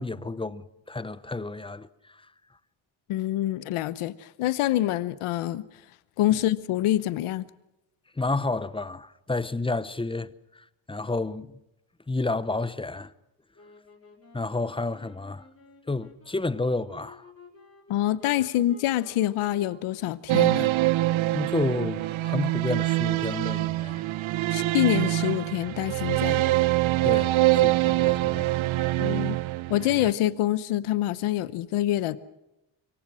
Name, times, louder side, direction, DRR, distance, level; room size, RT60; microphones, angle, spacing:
voice 1, 0.0-2.3 8.2-11.6 12.1-13.1 14.3-15.5 15.9-17.3 21.3-24.0 27.0-28.6, left 3 dB, 10° left, 0.8 m, -31 dB
voice 2, 3.1-5.6 6.2-7.5 17.9-20.7 24.5-26.4 29.0-29.4 29.7-32.2, left 14 dB, 85° left, 1.0 m, -26 dB
sound 1, 13.5-23.9, left 3 dB, 30° left, 5.2 m, -53 dB
sound 2, 20.3-30.1, right 17 dB, 70° right, 0.9 m, -24 dB
26.0 x 23.0 x 6.2 m
cardioid pair, 105°, 49 cm